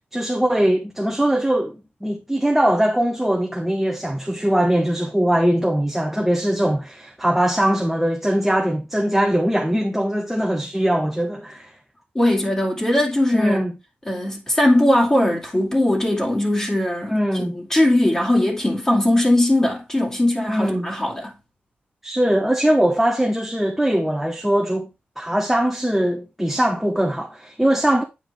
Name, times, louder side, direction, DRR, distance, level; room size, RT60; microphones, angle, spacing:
voice 1, 0.1-11.7 13.3-13.7 17.1-17.6 20.5-20.9 22.0-24.9 25.2-28.0, right 1 dB, 5° right, 0.9 m, -21 dB
voice 2, 12.1-13.6 14.1-21.3, left 1 dB, 15° left, 2.2 m, -20 dB
9.1 x 4.5 x 3.4 m
wide cardioid pair, 110°, 4 cm